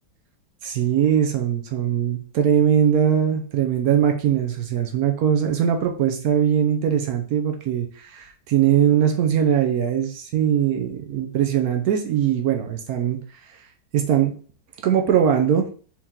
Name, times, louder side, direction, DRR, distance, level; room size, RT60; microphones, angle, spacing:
voice 1, 0.6-13.2 13.9-14.4 14.8-15.7, right 9 dB, 70° right, 4 dB, 0.9 m, -21 dB
4.5 x 2.8 x 3.6 m, 0.43 s
omnidirectional pair, 1.9 m